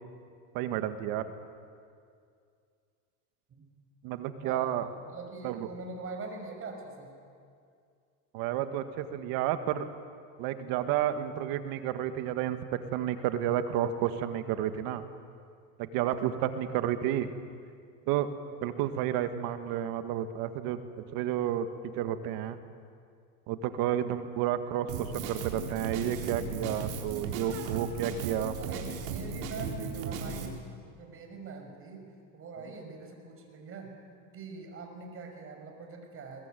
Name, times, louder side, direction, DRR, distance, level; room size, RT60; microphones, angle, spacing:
voice 1, 0.5-1.2 4.0-4.9 5.4-5.7 8.3-9.9 10.4-15.0 15.8-17.3 18.1-18.3 18.6-21.7 21.9-22.6 23.5-28.5, right 11 dB, 55° right, 9 dB, 1.9 m, -31 dB
voice 2, 4.4-4.7 5.1-7.2 28.6-30.6 31.0-32.1 32.3-33.9 34.3-36.5, right 4 dB, 30° right, 3 dB, 5.9 m, -43 dB
Drum kit, 24.9-30.5, right 5 dB, 70° right, 4.1 m, -36 dB
22.0 x 20.5 x 9.3 m, 2.3 s
supercardioid pair, 125°, 42 cm